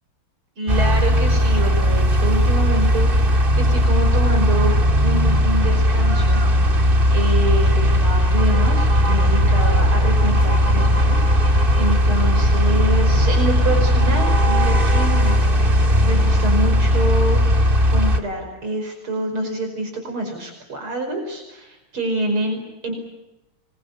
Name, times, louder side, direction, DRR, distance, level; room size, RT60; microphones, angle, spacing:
voice 1, 0.6-6.4 6.7-15.4 16.0-17.4 17.9-22.9, right 1 dB, 70° right, 4 dB, 6.1 m, -27 dB
sound 1, 0.7-18.2, equal, 25° right, 2.1 m, -17 dB
26.0 x 23.0 x 8.3 m, 0.94 s
omnidirectional pair, 2.4 m